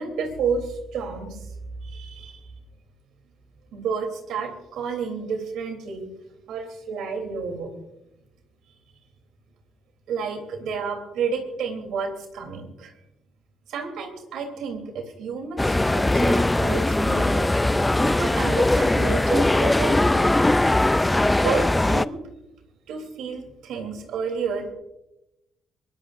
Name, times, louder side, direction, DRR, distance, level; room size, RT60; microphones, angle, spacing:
voice 1, 0.0-1.6 1.8-2.5 3.7-6.1 6.5-7.7 10.1-12.9 13.7-17.5 18.0-20.3 21.4-22.2 22.9-24.7, right 5 dB, 80° right, 5 dB, 3.1 m, -30 dB
sound 1, 15.6-22.1, left 2 dB, 10° left, 0.4 m, -20 dB
22.5 x 18.5 x 2.5 m, 0.90 s
cardioid pair, 90°, 0 cm